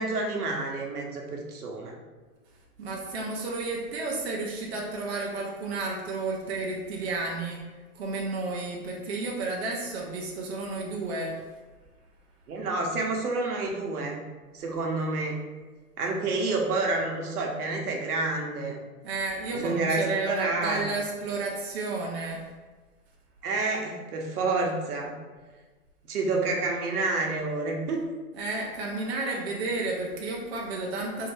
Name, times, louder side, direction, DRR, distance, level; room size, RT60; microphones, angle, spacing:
voice 1, 0.0-2.0 12.5-14.2 14.5-15.4 16.0-18.8 19.5-20.9 23.4-25.1 26.0-28.0, right 3 dB, 75° right, 0 dB, 0.9 m, -29 dB
voice 2, 2.8-7.6 7.9-11.4 19.0-22.5 28.4-31.3, right 3 dB, 45° right, -2 dB, 0.5 m, -32 dB
3.2 x 2.7 x 3.1 m, 1.3 s
hypercardioid pair, 160°, 46 cm